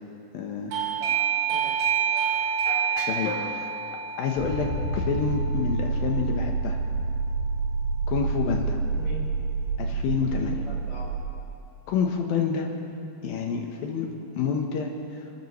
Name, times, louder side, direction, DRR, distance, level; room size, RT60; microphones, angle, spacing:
voice 1, 0.3-0.7 3.1-3.7 4.2-6.8 8.1-8.8 9.8-10.6 11.9-12.7 13.2-15.2, left 6 dB, 70° left, 2 dB, 2.5 m, -28 dB
Doorbell, 0.7-7.2, right 8 dB, 65° right, 2.6 m, -29 dB
voice 2, 1.0-1.7 2.1-2.4 8.9-9.2 10.3-11.1, left 2 dB, 30° left, -11 dB, 4.3 m, -42 dB
sound 1, 2.7-3.6 4.4-11.2, right 3 dB, 50° left, 2.7 m, -28 dB
28.5 x 13.5 x 3.2 m, 2.7 s
omnidirectional pair, 5.0 m